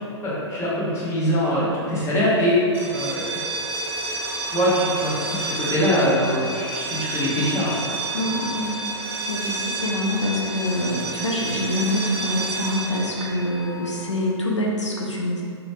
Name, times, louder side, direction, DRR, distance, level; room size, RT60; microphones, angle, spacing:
voice 1, 0.2-3.4 4.5-7.9, equal, 20° left, -8 dB, 0.8 m, -23 dB
sound 1, 2.7-14.4, right 2 dB, 15° right, 0.3 m, -30 dB
voice 2, 8.1-15.4, left 1 dB, 85° left, -2 dB, 0.4 m, -26 dB
3.0 x 2.1 x 2.9 m, 2.4 s
figure-of-eight pair, 110°, 15 cm